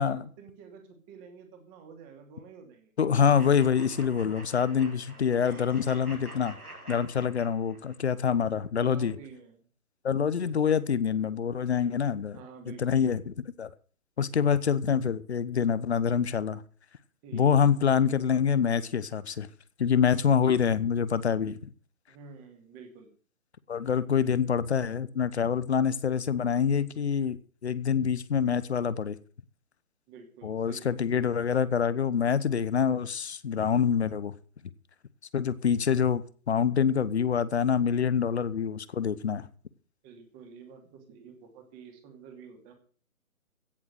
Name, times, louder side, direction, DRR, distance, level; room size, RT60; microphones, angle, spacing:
voice 1, 0.0-2.9 8.8-9.7 10.5-10.6 12.3-13.0 17.2-17.8 22.1-23.1 30.1-31.0 40.0-42.7, right 6 dB, 20° right, 2.6 m, -49 dB
voice 2, 3.0-6.6 6.9-9.1 10.0-12.4 12.7-13.7 14.2-16.6 17.3-19.5 19.8-21.7 23.7-27.4 27.6-29.2 30.4-34.3 35.3-39.5, left 7 dB, 50° left, 1.1 m, -26 dB
sound 1, 3.4-8.0, right 1 dB, 85° right, 4.9 m, -47 dB
16.5 x 7.3 x 7.9 m
figure-of-eight pair, 140°, 43 cm